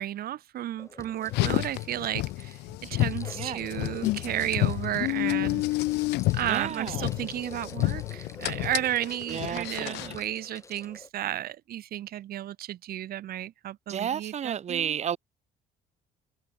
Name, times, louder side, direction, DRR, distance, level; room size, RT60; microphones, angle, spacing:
voice 1, 0.0-2.6 2.9-5.6 6.3-15.0, right 12 dB, 65° right, 1.7 m, -33 dB
sound 1, 0.8-11.1, left 3 dB, 15° left, 3.5 m, -48 dB
Car, 1.2-10.2, left 20 dB, 85° left, 0.6 m, -30 dB
voice 2, 6.4-7.1 9.3-10.1 13.9-15.2, right 9 dB, 40° right, 1.1 m, -32 dB
cardioid pair, 110°, 17 cm